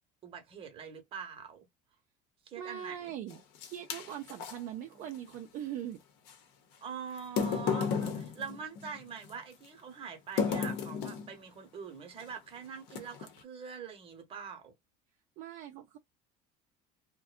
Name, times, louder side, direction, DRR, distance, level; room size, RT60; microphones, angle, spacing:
voice 1, 0.2-1.7 2.5-3.1 6.8-14.7, right 6 dB, 30° right, 0.9 m, -44 dB
voice 2, 2.6-6.0 15.4-16.0, right 10 dB, 50° right, 0.4 m, -41 dB
sound 1, 3.3-4.6 6.3-6.4 7.2-9.3 10.4-11.3 12.2-12.4 12.9-13.4, left 6 dB, 75° left, 0.8 m, -33 dB
2.5 x 2.1 x 2.4 m
cardioid pair, 155°, 18 cm